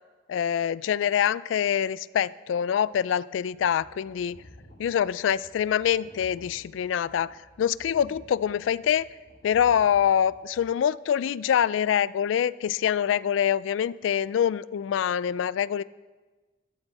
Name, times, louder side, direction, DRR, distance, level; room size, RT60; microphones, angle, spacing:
voice 1, 0.3-4.4 4.8-9.1 9.4-15.8, left 9 dB, 80° left, 18 dB, 0.3 m, -25 dB
sound 1, 3.4-10.6, left 1 dB, 50° left, 3.1 m, -53 dB
13.5 x 12.5 x 4.1 m, 1.3 s
head